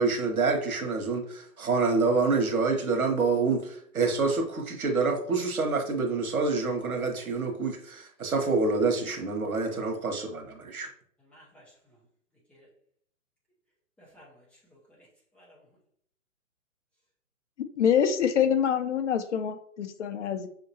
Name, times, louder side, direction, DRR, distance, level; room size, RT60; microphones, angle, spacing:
voice 1, 0.0-10.9, right 4 dB, 80° right, 3 dB, 1.2 m, -27 dB
voice 2, 11.3-11.7 12.5-12.7 14.0-15.1 15.3-15.6, equal, 5° left, -6 dB, 0.8 m, -56 dB
voice 3, 17.8-20.5, left 8 dB, 55° left, 10 dB, 0.6 m, -25 dB
5.8 x 2.9 x 2.8 m, 0.63 s
hypercardioid pair, 130°, 42 cm